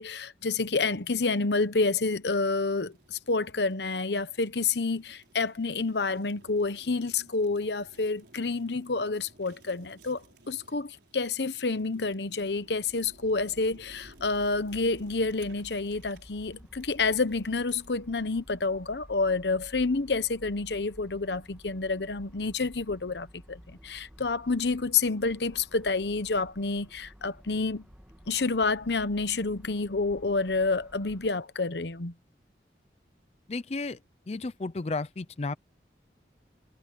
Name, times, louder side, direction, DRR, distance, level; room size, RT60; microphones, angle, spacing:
voice 1, 0.0-27.8 28.3-32.1, left 3 dB, 80° left, 1.0 m, -29 dB
Fire, 2.8-18.0, right 2 dB, 80° right, 4.8 m, -58 dB
sound 1, 12.3-31.3, equal, 5° right, 2.3 m, -53 dB
voice 2, 33.5-34.0 34.3-35.6, left 3 dB, 35° left, 0.5 m, -33 dB
head